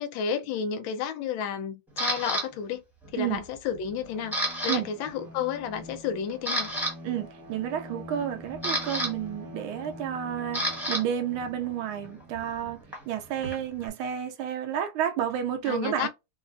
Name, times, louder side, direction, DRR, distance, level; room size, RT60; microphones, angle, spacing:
voice 1, 0.0-2.8 3.1-4.4 4.6-6.7 15.6-16.1, left 7 dB, 75° left, 1.3 m, -31 dB
Camera, 2.0-2.4 3.0-3.4 3.7-4.8 5.0-5.3 5.8-5.9 6.3-6.9 8.1-11.0 11.3-13.9, right 1 dB, ahead, 1.1 m, -31 dB
voice 2, 3.1-3.4 4.7-4.9 7.0-16.1, right 9 dB, 85° right, 1.4 m, -31 dB
Bowed string instrument, 3.9-12.4, left 1 dB, 45° right, 1.1 m, -45 dB
4.2 x 2.4 x 2.5 m
omnidirectional pair, 2.2 m